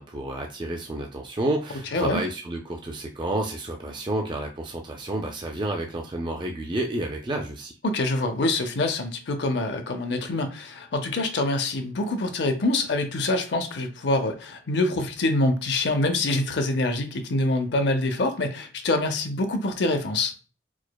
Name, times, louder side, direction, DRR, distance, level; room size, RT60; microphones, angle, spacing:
voice 1, 0.0-7.7, right 1 dB, 25° right, 0.4 m, -30 dB
voice 2, 7.8-20.3, left 2 dB, 70° left, 0.6 m, -25 dB
4.7 x 2.1 x 2.2 m
head